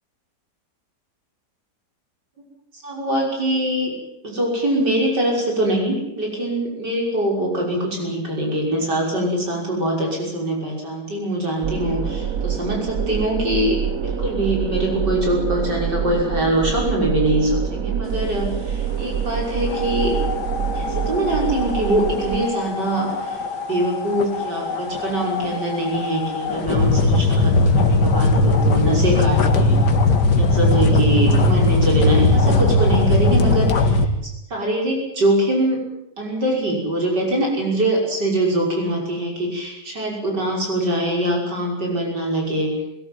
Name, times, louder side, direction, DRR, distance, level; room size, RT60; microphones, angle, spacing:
voice 1, 2.7-3.9 4.2-20.2 20.7-23.4 23.7-29.9 30.4-34.1 34.5-35.8 36.2-42.7, right 1 dB, 85° right, -1 dB, 6.7 m, -23 dB
sound 1, 11.6-22.4, right 8 dB, 55° right, 1.3 m, -26 dB
sound 2, 19.7-34.0, left 2 dB, 80° left, 2.2 m, -19 dB
20.5 x 17.0 x 9.4 m, 0.85 s
omnidirectional pair, 1.8 m